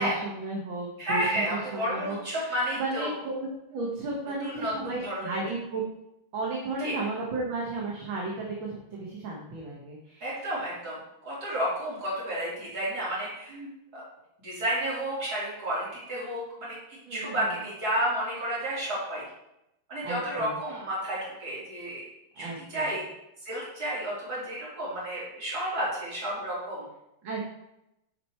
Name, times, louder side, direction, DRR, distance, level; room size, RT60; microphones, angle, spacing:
voice 1, 0.0-5.8 6.3-10.4 13.5-13.7 17.1-17.5 20.0-20.5 22.4-22.9 27.2-27.4, right 2 dB, 65° right, -3 dB, 2.1 m, -34 dB
voice 2, 1.0-3.1 4.4-5.4 6.8-6.9 10.2-11.0 11.2-13.6 13.9-14.0 14.4-19.2 19.9-22.1 22.4-23.0 23.5-26.9, right 1 dB, 45° right, -7 dB, 3.7 m, -31 dB
10.5 x 5.0 x 4.4 m, 0.85 s
omnidirectional pair, 2.4 m